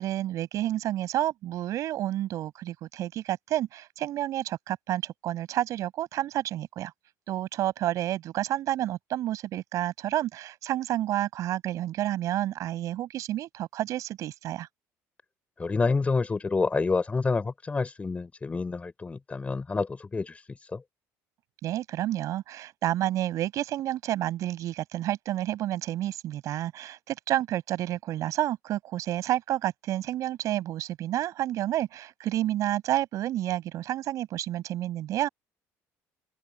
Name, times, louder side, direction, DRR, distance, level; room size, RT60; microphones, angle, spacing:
voice 1, 0.0-6.9 7.3-14.7 21.6-35.3, right 13 dB, 65° right, 7.3 m, -30 dB
voice 2, 15.6-20.4 20.7-20.8, left 4 dB, 20° left, 4.3 m, -28 dB
open air
cardioid pair, 105°, 6 cm